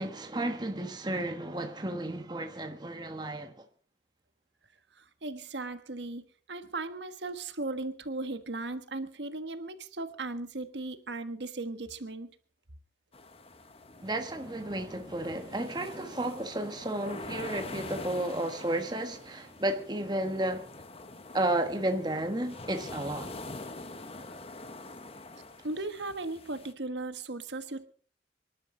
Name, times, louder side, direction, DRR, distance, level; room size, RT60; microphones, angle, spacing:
voice 1, 0.0-3.6 14.0-20.7 21.3-23.3, right 1 dB, 25° right, 1.3 m, -32 dB
voice 2, 5.0-6.2 6.5-12.3 25.6-27.9, right 2 dB, 75° right, 1.4 m, -37 dB
sound 1, 13.1-26.7, left 2 dB, 35° left, 1.1 m, -45 dB
25.5 x 11.5 x 3.8 m
head